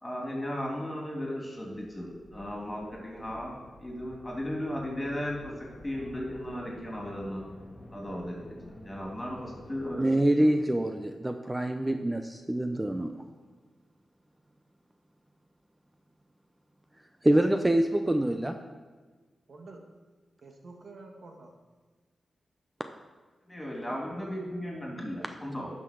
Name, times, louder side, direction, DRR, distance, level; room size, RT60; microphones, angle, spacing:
voice 1, 0.0-3.5 3.8-5.5 5.8-7.4 7.9-8.4 8.8-10.0 10.4-10.5 23.5-25.7, equal, 20° left, -2 dB, 3.1 m, -36 dB
sound 1, 1.7-10.0, left 1 dB, 35° left, 1.6 m, -50 dB
voice 2, 10.0-13.1 17.2-18.6, right 1 dB, 20° right, 6 dB, 0.7 m, -25 dB
voice 3, 19.5-19.8 20.4-21.5 24.8-25.4, right 3 dB, 65° right, 3 dB, 1.5 m, -49 dB
11.0 x 6.1 x 4.7 m, 1.4 s
cardioid pair, 45°, 0 cm